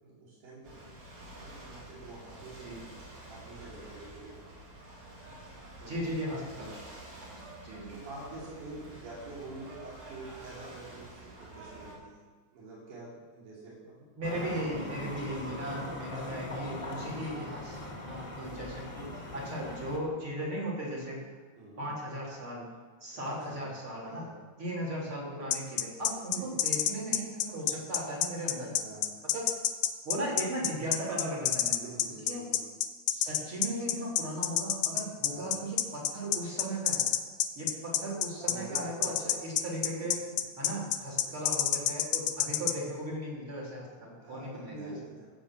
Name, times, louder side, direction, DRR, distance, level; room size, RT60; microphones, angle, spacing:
voice 1, 0.0-2.7 3.2-4.4 5.8-6.1 6.5-6.8 7.9-12.2 12.5-15.4 21.6-21.9 23.1-23.7 24.0-24.3 26.3-26.6 28.7-29.1 31.8-32.6 35.3-35.6 38.4-39.3 41.2-41.4 44.2-45.3, right 2 dB, 75° right, -7 dB, 4.7 m, -47 dB
Ocean / Boat Water vehicle, 0.6-11.9, right 2 dB, 60° right, 4.9 m, -49 dB
voice 2, 5.8-6.7 7.2-7.9 14.2-21.2 21.8-22.7 23.0-24.3 24.6-28.8 29.3-29.5 30.0-31.8 32.2-32.4 33.1-37.0 37.6-40.3 40.6-44.9, right 1 dB, 40° right, -5 dB, 4.3 m, -37 dB
sound 1, 14.2-20.0, left 1 dB, 15° left, 1.2 m, -40 dB
sound 2, 25.5-42.7, left 11 dB, 75° left, 1.9 m, -28 dB
15.0 x 7.1 x 7.5 m, 1.4 s
omnidirectional pair, 3.7 m